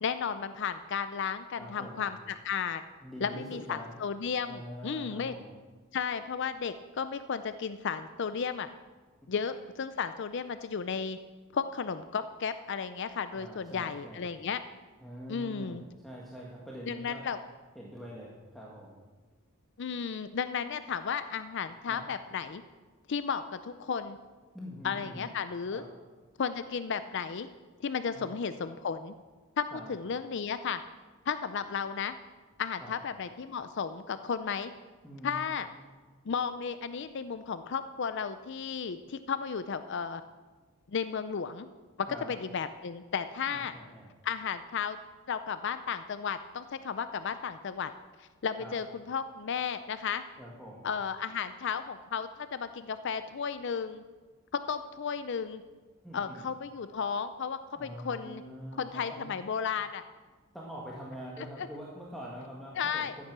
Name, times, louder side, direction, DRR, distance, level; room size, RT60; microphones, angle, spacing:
voice 1, 0.0-2.8 3.2-5.3 5.9-8.7 9.3-11.2 11.5-14.6 15.3-15.8 16.9-17.4 19.8-22.6 23.1-24.2 24.8-25.8 26.4-27.5 27.8-29.1 29.6-30.8 31.3-32.1 32.6-34.7 35.2-35.7 36.3-40.2 40.9-41.7 42.0-43.7 44.2-45.0 45.3-47.9 48.2-50.2 50.8-54.0 54.5-55.6 56.1-58.4 58.7-60.0 61.6-61.7 62.8-63.1, left 6 dB, 60° left, 11 dB, 0.5 m, -34 dB
voice 2, 1.6-2.0 3.0-4.0 4.5-5.6 13.3-14.2 15.0-17.2 17.8-19.0 21.9-22.1 24.5-25.3 25.7-25.9 28.1-28.3 29.7-29.9 32.8-32.9 35.0-35.6 42.1-42.3 43.5-44.1 48.6-48.8 50.4-50.9 56.0-56.4 57.8-59.3 60.5-63.2, equal, ahead, -5 dB, 1.8 m, -44 dB
14.0 x 9.5 x 6.1 m, 1.3 s
head